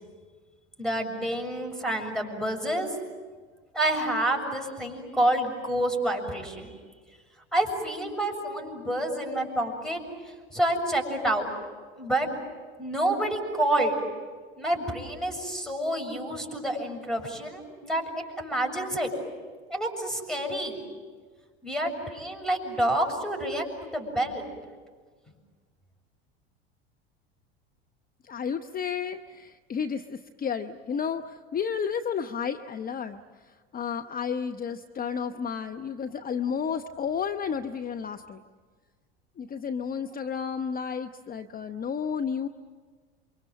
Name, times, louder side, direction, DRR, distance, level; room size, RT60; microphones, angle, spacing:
voice 1, 0.8-2.9 3.7-6.7 7.5-10.0 10.5-11.5 12.0-12.3 12.8-14.0 14.6-19.1 19.7-20.8 21.6-24.5, right 1 dB, ahead, 3 dB, 7.1 m, -28 dB
voice 2, 28.2-38.4 39.4-42.5, left 7 dB, 30° left, 7 dB, 0.9 m, -32 dB
28.5 x 24.5 x 7.7 m, 1.5 s
hypercardioid pair, 80°, 31 cm